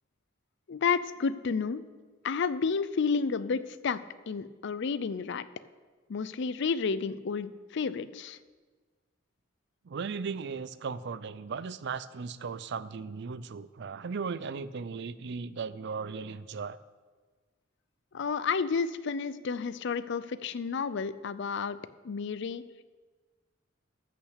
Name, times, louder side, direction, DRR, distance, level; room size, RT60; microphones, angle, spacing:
voice 1, 0.7-1.8 2.2-4.0 4.3-5.5 6.1-8.4 18.1-21.8 22.0-22.6, left 5 dB, 60° left, 15 dB, 0.5 m, -31 dB
voice 2, 9.9-16.8, right 5 dB, 60° right, 16 dB, 0.5 m, -37 dB
14.5 x 5.9 x 6.6 m, 1.4 s
head